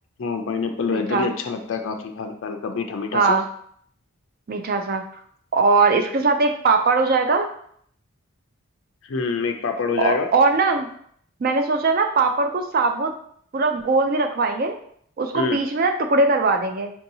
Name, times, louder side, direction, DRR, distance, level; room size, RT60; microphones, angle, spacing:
voice 1, 0.2-3.4 9.0-10.3 15.3-15.6, left 5 dB, 60° left, 5 dB, 0.4 m, -26 dB
voice 2, 0.9-1.3 3.1-3.4 4.5-5.0 5.5-7.5 10.0-10.9 11.4-13.1 13.5-14.8 15.2-16.9, right 3 dB, 40° right, 6 dB, 0.4 m, -20 dB
4.5 x 2.7 x 2.7 m, 0.65 s
head